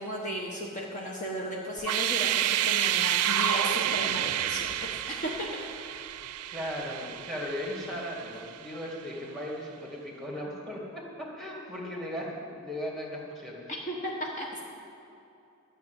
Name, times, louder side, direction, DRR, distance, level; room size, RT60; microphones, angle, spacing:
voice 1, 0.0-4.7 5.1-6.1 13.9-14.6, equal, 35° left, -2 dB, 1.3 m, -35 dB
sound 1, 1.8-8.7, right 11 dB, 90° right, 0.5 m, -29 dB
voice 2, 6.5-13.7, equal, ahead, -2 dB, 2.3 m, -37 dB
12.5 x 6.8 x 9.2 m, 2.8 s
head